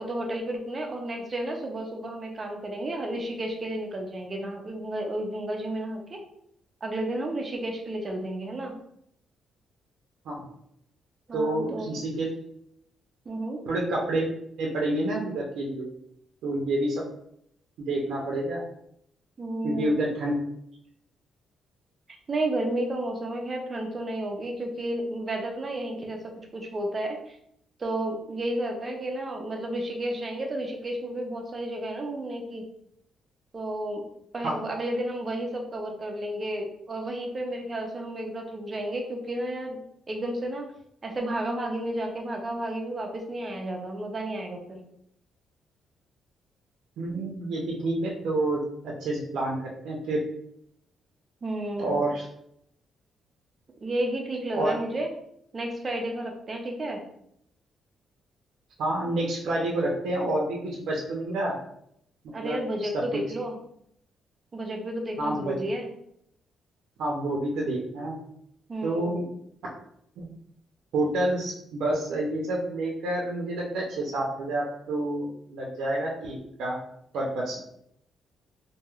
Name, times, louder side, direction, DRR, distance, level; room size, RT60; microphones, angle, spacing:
voice 1, 0.0-6.2 6.8-8.8 11.3-12.0 13.3-13.6 19.4-19.9 22.3-26.2 26.5-27.4 27.8-32.7 33.5-34.0 34.3-39.8 40.1-40.7 41.0-44.8 51.4-52.0 53.8-55.1 55.5-57.0 62.3-63.6 64.5-65.9 68.7-69.2, right 1 dB, 25° right, 2 dB, 0.4 m, -32 dB
voice 2, 11.3-12.3 13.7-14.2 14.6-15.9 16.4-17.0 17.8-18.6 19.6-20.4 34.4-34.5 47.0-49.6 49.8-50.2 51.8-52.3 54.5-54.7 58.8-61.6 62.4-63.0 65.2-65.5 67.0-68.2 68.8-69.2 70.2-70.3 70.9-76.8 77.1-77.6, right 1 dB, 75° right, -2 dB, 0.5 m, -28 dB
3.0 x 2.6 x 2.3 m, 0.74 s
cardioid pair, 175°, 0 cm